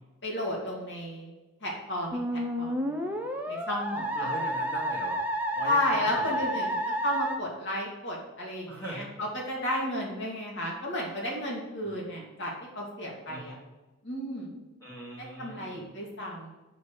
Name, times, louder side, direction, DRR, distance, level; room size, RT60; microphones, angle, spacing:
voice 1, 0.2-1.3 1.6-4.5 5.6-6.8 7.0-13.6 14.0-14.6 15.2-16.5, left 1 dB, 55° left, -3 dB, 2.7 m, -33 dB
Musical instrument, 2.1-7.4, equal, 10° right, 0.6 m, -30 dB
voice 2, 4.1-5.2 5.5-6.4 8.7-9.1 10.2-10.3 11.8-12.0 13.3-13.6 14.8-15.9, right 1 dB, 15° left, -6 dB, 1.5 m, -41 dB
6.7 x 6.5 x 5.0 m, 1.1 s
head